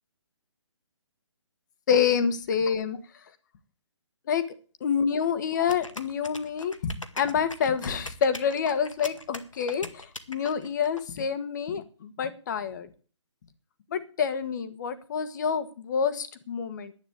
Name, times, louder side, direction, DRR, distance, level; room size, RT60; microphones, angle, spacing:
voice 1, 1.9-3.0 4.3-4.5 4.8-12.9 13.9-16.9, left 7 dB, 35° left, 11 dB, 1.6 m, -27 dB
sound 1, 5.7-11.0, left 2 dB, 85° left, 1.7 m, -41 dB
11.0 x 8.9 x 8.1 m, 0.39 s
figure-of-eight pair, 140°, 16 cm